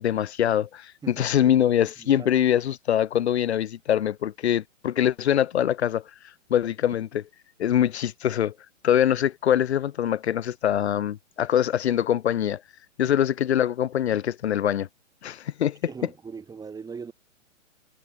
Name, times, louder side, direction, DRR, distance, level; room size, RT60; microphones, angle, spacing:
voice 1, 0.0-6.0 6.5-7.2 7.6-8.5 8.8-12.6 13.0-14.9 15.2-15.8, left 10 dB, 55° left, 3.3 m, -23 dB
voice 2, 1.0-2.3 13.0-13.1 15.8-17.1, right 5 dB, 10° right, 6.8 m, -41 dB
hypercardioid pair, 140°, 38 cm